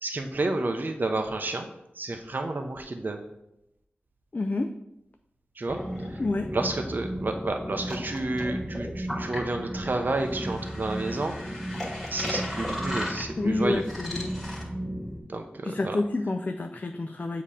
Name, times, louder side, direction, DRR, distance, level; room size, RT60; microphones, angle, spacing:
voice 1, 0.0-1.7 2.0-3.2 5.6-5.8 6.1-6.2 6.5-11.6 12.1-13.8 15.3-16.0, right 2 dB, 50° right, 4 dB, 0.5 m, -30 dB
voice 2, 4.3-4.7 6.2-6.5 13.4-14.3 15.6-17.4, left 2 dB, 40° left, 5 dB, 0.3 m, -28 dB
sound 1, 5.7-15.2, equal, 5° left, 1.7 m, -34 dB
7.3 x 2.8 x 4.9 m, 0.84 s
wide cardioid pair, 75°, 4 cm